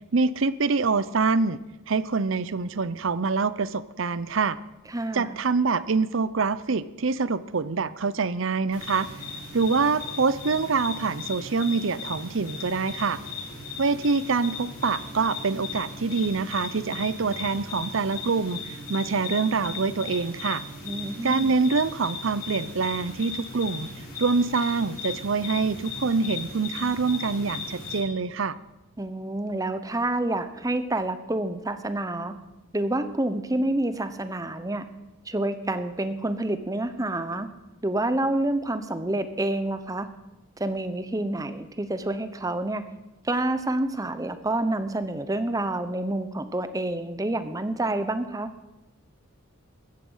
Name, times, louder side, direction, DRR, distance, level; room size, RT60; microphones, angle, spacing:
voice 1, 0.1-1.6 1.9-4.6 5.1-9.1 9.5-13.2 13.8-20.6 21.2-23.9 24.2-28.6, right 4 dB, 65° right, 16 dB, 0.7 m, -25 dB
voice 2, 4.9-5.4 20.8-21.5 29.0-32.3 32.7-34.9 35.3-37.5 37.8-40.1 40.6-42.8 43.2-48.5, right 1 dB, 15° right, 11 dB, 0.8 m, -28 dB
sound 1, 8.7-28.0, left 4 dB, 45° left, 6.1 m, -37 dB
15.0 x 14.0 x 5.6 m, 0.98 s
head